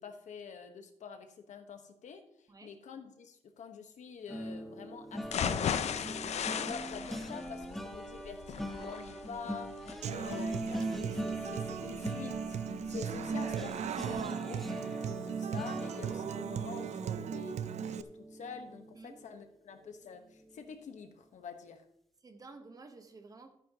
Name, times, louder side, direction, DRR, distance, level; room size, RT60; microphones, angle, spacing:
voice 1, 0.0-5.5 5.9-6.4 6.7-21.8, left 6 dB, 80° left, 6 dB, 1.2 m, -47 dB
sound 1, 4.3-19.4 19.8-20.1 20.4-20.6, equal, ahead, 0.9 m, -42 dB
sound 2, 5.2-13.2 13.6-13.7 14.1-14.2, left 8 dB, 65° left, 0.5 m, -37 dB
Human voice / Acoustic guitar, 10.0-18.0, right 8 dB, 65° right, 0.5 m, -37 dB
voice 2, 22.2-23.6, right 3 dB, 30° right, 7 dB, 1.1 m, -52 dB
13.5 x 9.5 x 2.9 m, 0.73 s
wide cardioid pair, 155°, 12 cm